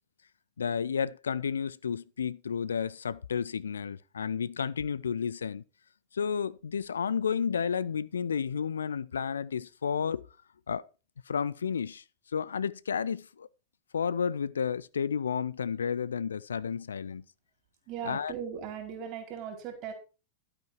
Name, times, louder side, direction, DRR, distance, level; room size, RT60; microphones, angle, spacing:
voice 1, 0.6-5.6 6.1-10.2 10.7-10.8 11.3-12.0 12.3-13.5 13.9-17.2 18.1-18.3, left 7 dB, 70° left, 0.4 m, -31 dB
voice 2, 17.9-19.9, right 8 dB, 40° right, 4.6 m, -38 dB
12.0 x 8.7 x 4.4 m
figure-of-eight pair, 90°, 0 cm